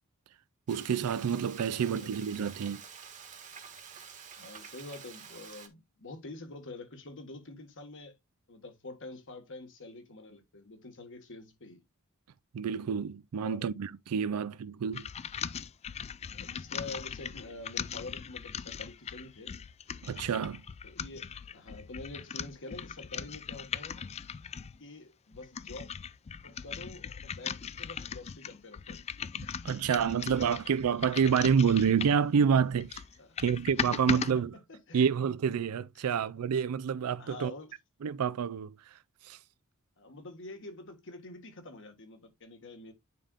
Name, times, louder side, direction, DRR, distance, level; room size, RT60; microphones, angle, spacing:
Frying (food), 0.7-5.7, right 7 dB, 35° right, 1.2 m, -48 dB
voice 1, 0.7-2.8 12.5-15.1 20.0-20.6 29.3-33.0 33.4-34.5 34.9-37.5 38.0-39.4, right 7 dB, 85° right, 0.4 m, -28 dB
voice 2, 1.7-2.1 2.4-2.5 4.4-8.1 8.5-11.8 13.4-13.7 14.3-14.4 16.2-19.5 20.8-24.1 24.8-25.9 26.4-29.0 29.4-29.5 31.1-31.2 33.2-33.4 34.1-34.4 34.7-35.1 36.0-36.2 37.2-37.7 40.0-42.9, left 2 dB, 60° left, 1.6 m, -47 dB
sound 1, 14.9-24.8 25.3-32.3 32.7-34.3, left 7 dB, 30° left, 0.3 m, -39 dB
9.4 x 5.1 x 2.4 m
head